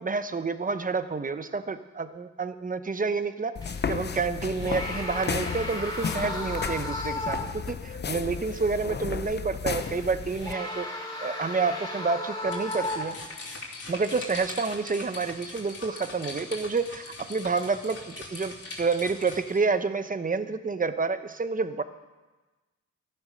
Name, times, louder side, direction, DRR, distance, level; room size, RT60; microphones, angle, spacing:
voice 1, 0.0-3.6 3.9-13.2 13.9-21.8, right 4 dB, 25° right, 11 dB, 0.9 m, -29 dB
sound 1, 3.6-10.5, left 6 dB, 35° left, 0.7 m, -33 dB
sound 2, 3.6-4.0 4.5-7.7 8.1-8.2 9.7-13.4 14.1-14.3, left 2 dB, 15° left, 2.7 m, -35 dB
sound 3, 12.4-19.6, left 3 dB, 55° left, 3.1 m, -41 dB
13.5 x 11.5 x 6.5 m, 1.2 s
cardioid pair, 95°, 30 cm